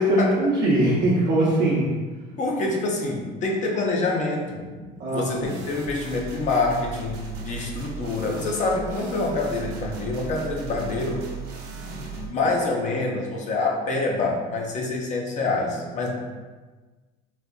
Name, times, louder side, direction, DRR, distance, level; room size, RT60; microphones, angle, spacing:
voice 1, 0.0-2.1 5.0-5.6, right 1 dB, 55° right, -7 dB, 0.7 m, -21 dB
voice 2, 2.4-11.3 11.7-16.1, left 3 dB, 40° left, 0 dB, 0.6 m, -26 dB
sound 1, 5.4-12.3, right 7 dB, 90° right, 0.7 m, -38 dB
4.1 x 2.5 x 2.3 m, 1.3 s
supercardioid pair, 115°, 19 cm